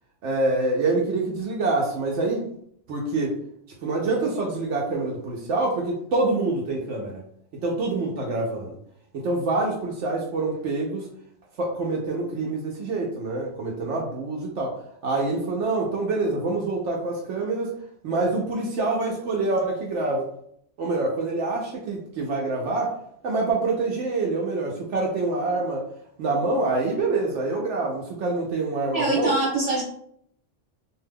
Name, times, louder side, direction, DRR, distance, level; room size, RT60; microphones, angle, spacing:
voice 1, 0.2-2.5 2.9-3.4 3.8-7.2 7.6-8.8 9.1-11.1 11.6-14.8 15.0-17.7 18.0-20.3 20.8-22.9 23.2-25.8 26.2-29.3, right 3 dB, 75° right, -1 dB, 0.9 m, -26 dB
voice 2, 28.9-29.8, right 2 dB, 45° right, -6 dB, 0.5 m, -23 dB
2.6 x 2.2 x 3.3 m, 0.68 s
omnidirectional pair, 1.3 m